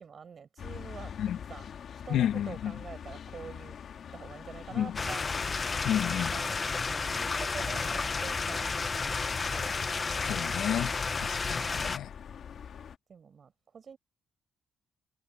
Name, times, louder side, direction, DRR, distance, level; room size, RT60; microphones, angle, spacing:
voice 1, 0.0-3.8 4.1-5.3 6.3-9.7 11.2-11.4 13.1-14.0, right 6 dB, 45° right, 6.1 m, -47 dB
sound 1, 0.6-13.0, left 8 dB, 60° left, 2.3 m, -45 dB
voice 2, 2.1-2.8 4.7-4.9 5.8-6.3 10.2-10.9 11.2-12.1, left 10 dB, 75° left, 1.5 m, -31 dB
sound 2, 5.0-12.0, left 4 dB, 35° left, 1.1 m, -32 dB
cardioid pair, 90°, 0 cm